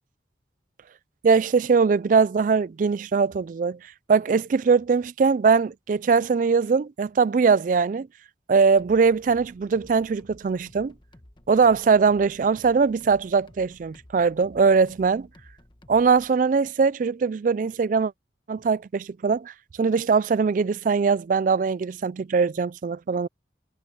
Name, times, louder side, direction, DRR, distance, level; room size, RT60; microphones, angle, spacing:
voice 1, 1.2-3.8 4.1-8.1 8.5-10.9 11.5-15.3 15.9-18.1 18.5-19.5 19.8-23.3, right 5 dB, 45° right, 0.3 m, -21 dB
sound 1, 8.8-16.3, left 1 dB, 25° left, 1.2 m, -53 dB
head